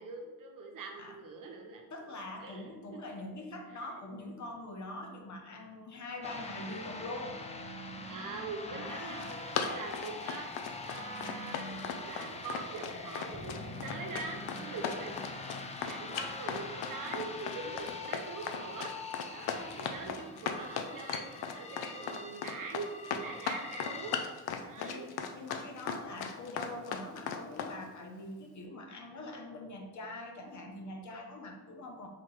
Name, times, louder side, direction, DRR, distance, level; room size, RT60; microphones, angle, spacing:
voice 1, 0.0-1.9 2.4-3.0 3.7-3.8 8.1-15.5 15.8-18.9 19.3-21.3 21.5-24.2 24.6-25.1 25.7-25.9, right 4 dB, 55° right, 2 dB, 0.9 m, -43 dB
voice 2, 1.9-7.4 8.7-9.4 14.7-15.2 24.8-32.1, left 2 dB, 50° left, 2 dB, 0.9 m, -44 dB
sound 1, 6.2-24.2, left 3 dB, 20° left, 0.5 m, -43 dB
Run, 9.0-27.7, left 7 dB, 75° left, 0.6 m, -37 dB
3.9 x 2.9 x 4.6 m, 1.2 s
cardioid pair, 85°, 38 cm